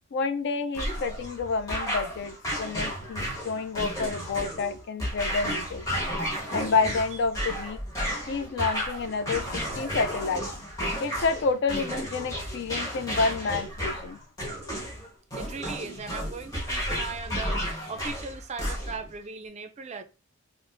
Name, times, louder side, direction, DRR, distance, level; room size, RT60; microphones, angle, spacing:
voice 1, 0.1-5.8 6.5-7.8 8.3-10.5 11.0-14.2, left 4 dB, 60° left, 0.4 m, -29 dB
sound 1, 0.7-19.1, equal, 15° left, 1.1 m, -33 dB
voice 2, 15.4-17.6 17.9-20.0, right 4 dB, 35° right, 0.4 m, -38 dB
4.9 x 2.0 x 2.5 m
head